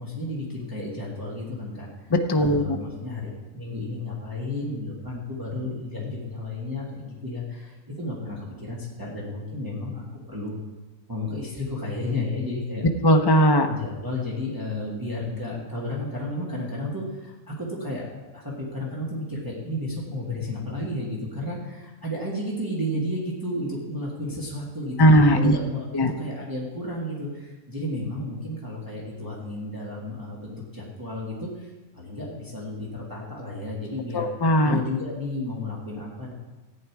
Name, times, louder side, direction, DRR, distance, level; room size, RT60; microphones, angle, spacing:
voice 1, 0.0-1.9 2.3-10.6 11.1-12.9 13.7-34.3 34.6-36.3, left 1 dB, 15° right, -5 dB, 1.8 m, -32 dB
voice 2, 2.3-2.8 13.0-13.7 25.0-25.5 25.9-26.1 34.1-34.8, equal, 25° left, 5 dB, 0.6 m, -18 dB
14.5 x 9.2 x 4.7 m, 1.2 s
omnidirectional pair, 1.5 m